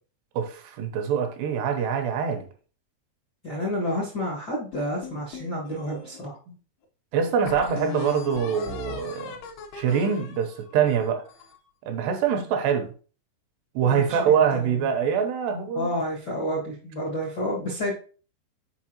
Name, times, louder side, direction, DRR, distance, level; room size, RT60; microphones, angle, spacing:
voice 1, 0.4-2.5 6.5-6.6 7.1-9.4 9.7-11.3 11.9-12.9 13.8-15.9, right 7 dB, 80° right, 2.9 m, -24 dB
voice 2, 3.4-6.4 13.8-14.9 15.7-17.9, equal, 55° left, 1.1 m, -30 dB
sound 1, 4.7-6.3 6.8-6.9 7.5-11.6, left 6 dB, 75° left, 2.6 m, -39 dB
7.2 x 5.3 x 2.9 m
omnidirectional pair, 4.9 m